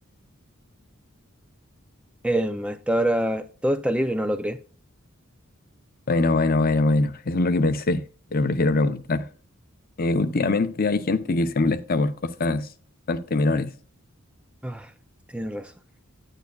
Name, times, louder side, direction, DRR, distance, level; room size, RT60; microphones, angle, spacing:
voice 1, 2.2-4.6 14.6-14.9 15.3-15.7, right 1 dB, 5° right, 0.3 m, -25 dB
voice 2, 6.1-8.0 8.3-9.3 10.0-12.7 13.1-13.7, left 2 dB, 45° left, 0.6 m, -23 dB
9.4 x 9.1 x 2.3 m
head